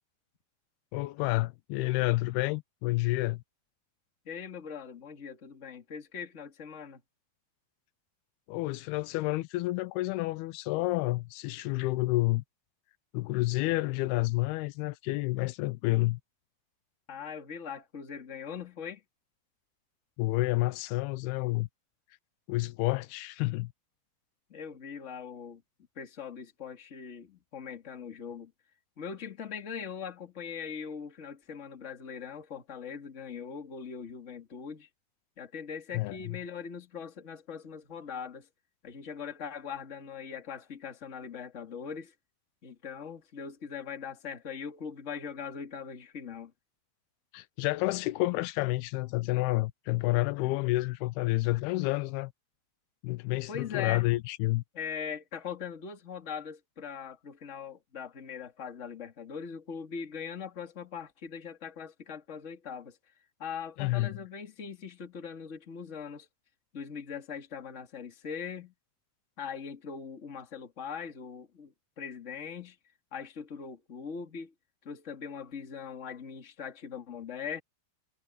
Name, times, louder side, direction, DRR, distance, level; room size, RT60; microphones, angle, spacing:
voice 1, 0.9-3.4 8.5-12.4 13.1-16.2 20.2-21.7 22.5-23.7 35.9-36.4 47.3-52.3 53.0-54.6 63.8-64.2, left 20 dB, 85° left, 2.6 m, -29 dB
voice 2, 4.2-7.0 17.1-19.0 24.5-25.6 26.0-28.5 29.0-34.9 35.4-38.5 38.8-42.1 42.6-46.5 53.5-54.1 54.7-63.0 63.4-66.3 66.7-68.7 69.4-72.8 73.1-74.5 74.8-77.6, left 7 dB, 25° left, 1.9 m, -41 dB
omnidirectional pair, 4.5 m